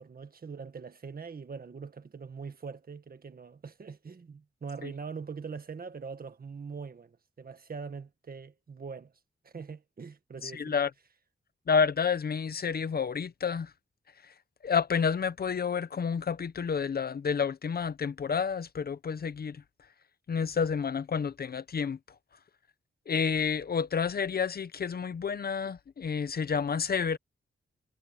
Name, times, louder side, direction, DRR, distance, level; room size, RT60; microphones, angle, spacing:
voice 1, 0.0-9.1 9.4-10.7, right 5 dB, 45° right, 1.7 m, -42 dB
voice 2, 10.4-10.9 11.7-13.7 14.6-19.6 20.3-22.0 23.1-27.2, left 6 dB, 50° left, 0.7 m, -29 dB
wide cardioid pair, 145°, 21 cm